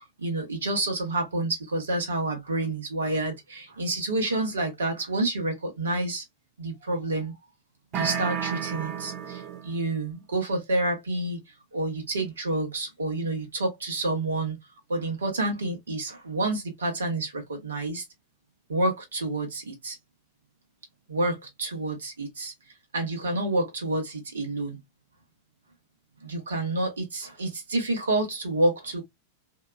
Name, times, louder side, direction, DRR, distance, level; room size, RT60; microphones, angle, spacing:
voice 1, 0.2-6.2 6.6-7.3 7.9-11.4 11.7-14.6 14.9-18.0 18.7-20.0 21.1-22.5 22.9-24.8 26.2-29.0, right 2 dB, 70° right, 0.9 m, -28 dB
sound 1, 7.9-9.9, right 7 dB, 35° right, 0.5 m, -32 dB
2.7 x 2.2 x 2.2 m
figure-of-eight pair, 90°, 0 cm